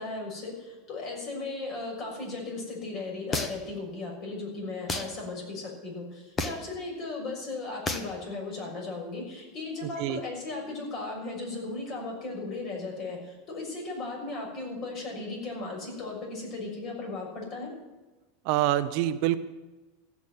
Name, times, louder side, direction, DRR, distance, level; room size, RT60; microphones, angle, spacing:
voice 1, 0.0-17.7, left 3 dB, 40° left, 0 dB, 6.5 m, -36 dB
sound 1, 3.3-3.8 4.9-5.1 6.4-6.7 7.9-8.1, left 3 dB, 20° left, 1.2 m, -31 dB
voice 2, 18.4-19.4, right 13 dB, 55° right, 10 dB, 0.8 m, -25 dB
15.5 x 7.2 x 9.5 m, 1.1 s
supercardioid pair, 135°, 0 cm